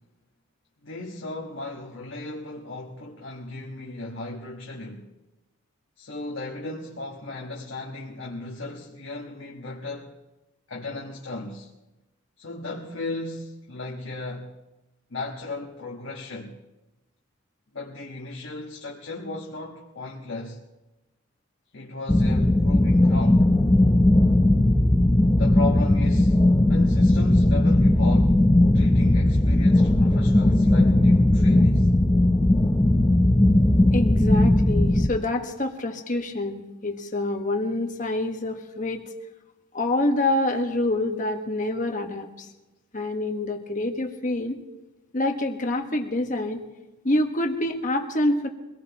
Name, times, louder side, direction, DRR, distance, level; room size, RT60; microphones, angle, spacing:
voice 1, 0.8-5.1 6.0-10.2 10.7-11.7 12.4-14.5 15.1-16.5 17.7-20.6 21.7-23.5 25.4-26.4 26.7-28.5 28.7-31.9, left 2 dB, 65° left, 1.4 m, -36 dB
sound 1, 22.1-35.1, left 1 dB, 15° left, 0.6 m, -18 dB
voice 2, 33.9-39.1 39.7-42.5 42.9-44.6 45.1-46.6 47.0-48.5, left 1 dB, 40° left, 1.4 m, -26 dB
24.0 x 18.5 x 3.0 m
head